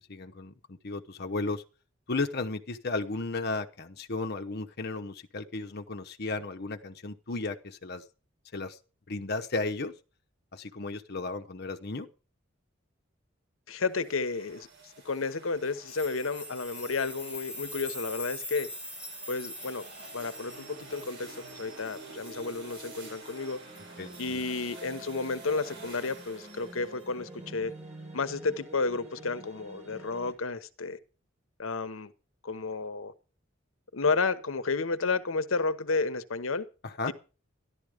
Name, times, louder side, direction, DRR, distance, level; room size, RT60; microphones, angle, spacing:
voice 1, 0.1-1.6 2.1-8.0 8.5-8.8 9.1-9.9 10.5-12.1 24.0-24.4 36.8-37.1, left 3 dB, 50° left, 0.9 m, -34 dB
voice 2, 13.7-14.7 15.0-18.7 19.3-19.9 20.1-23.6 24.2-27.7 28.1-31.0 31.6-32.1 32.4-33.1 33.9-36.7 37.1-37.2, left 4 dB, 85° left, 1.0 m, -31 dB
sound 1, 13.8-27.0, right 3 dB, 60° right, 4.9 m, -51 dB
sound 2, 15.9-24.5 25.1-25.2 26.0-26.2, left 1 dB, 5° right, 2.9 m, -44 dB
sound 3, 20.1-30.3, right 2 dB, 30° right, 7.3 m, -48 dB
13.5 x 11.5 x 5.0 m
head